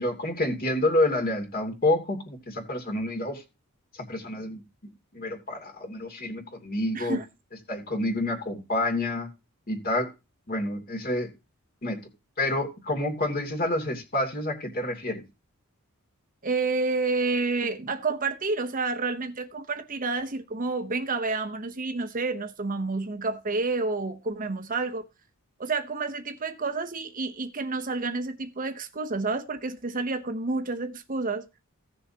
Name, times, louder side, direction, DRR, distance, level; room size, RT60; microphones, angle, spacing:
voice 1, 0.0-3.4 4.1-4.6 5.1-7.2 7.7-9.3 9.7-10.1 10.5-11.3 11.8-12.0 12.4-15.2, left 1 dB, 45° left, 2.7 m, -28 dB
voice 2, 16.4-25.1 25.6-31.5, right 3 dB, 40° right, 0.9 m, -29 dB
16.0 x 6.7 x 2.9 m
head